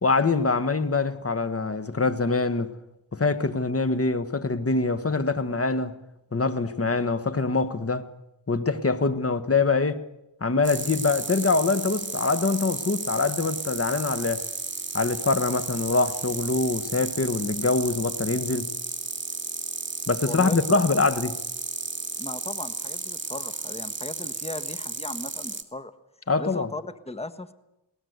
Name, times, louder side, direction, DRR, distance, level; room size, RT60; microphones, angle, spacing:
voice 1, 0.0-2.7 3.1-5.9 6.3-8.0 8.5-10.0 10.4-14.4 14.9-18.7 20.1-21.4 26.3-26.7, left 3 dB, 30° left, 1.5 m, -24 dB
sound 1, 10.6-25.6, right 3 dB, 25° right, 2.0 m, -33 dB
voice 2, 20.2-20.7 22.2-25.9 26.4-27.5, left 2 dB, 15° left, 1.5 m, -37 dB
20.5 x 19.0 x 8.1 m
cardioid pair, 55°, 44 cm